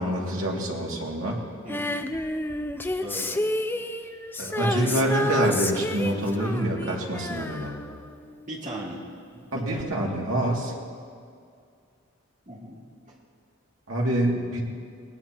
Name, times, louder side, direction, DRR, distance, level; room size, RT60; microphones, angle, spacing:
voice 1, 0.0-1.4 4.4-7.7 9.5-10.7 13.9-14.6, right 1 dB, 85° right, -2 dB, 2.5 m, -26 dB
Female singing, 1.7-8.7 9.8-9.9, left 1 dB, 10° left, 0.4 m, -30 dB
voice 2, 2.8-3.4 4.0-4.1 4.4-5.6 5.9-6.3 8.4-9.0 9.3-10.2 12.5-12.8 13.1-13.2, equal, 35° right, -3 dB, 2.5 m, -38 dB
20.5 x 19.0 x 3.0 m, 2.3 s
head